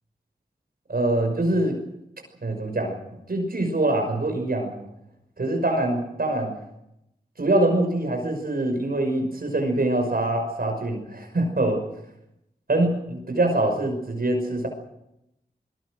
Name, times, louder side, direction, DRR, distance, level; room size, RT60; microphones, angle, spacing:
voice 1, 0.9-1.8 2.4-3.0 3.3-4.8 5.4-6.5 7.4-11.8 12.7-14.7, right 1 dB, 60° right, 3 dB, 5.9 m, -24 dB
24.5 x 22.0 x 6.4 m, 0.84 s
wide cardioid pair, 75°, 17 cm